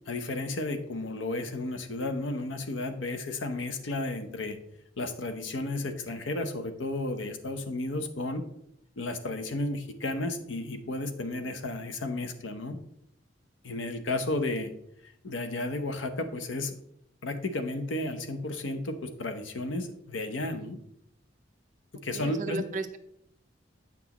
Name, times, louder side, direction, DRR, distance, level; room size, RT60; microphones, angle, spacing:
voice 1, 0.1-4.6 5.0-8.4 9.0-12.8 13.6-14.7 15.2-16.8 17.2-20.8 22.0-22.7, left 2 dB, 85° left, 7 dB, 0.8 m, -33 dB
voice 2, 22.1-23.0, right 3 dB, 45° right, 7 dB, 0.6 m, -34 dB
8.3 x 6.0 x 3.0 m, 0.74 s
head